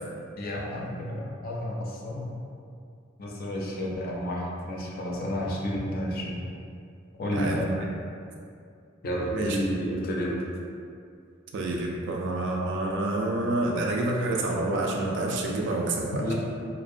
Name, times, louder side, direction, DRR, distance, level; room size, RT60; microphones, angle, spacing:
voice 1, 0.4-2.3 3.2-6.4 7.2-7.7 9.0-10.4 16.2-16.3, equal, 45° left, -3 dB, 0.4 m, -31 dB
voice 2, 11.5-16.3, right 2 dB, 60° right, -1 dB, 0.3 m, -28 dB
2.5 x 2.1 x 2.5 m, 2.4 s
head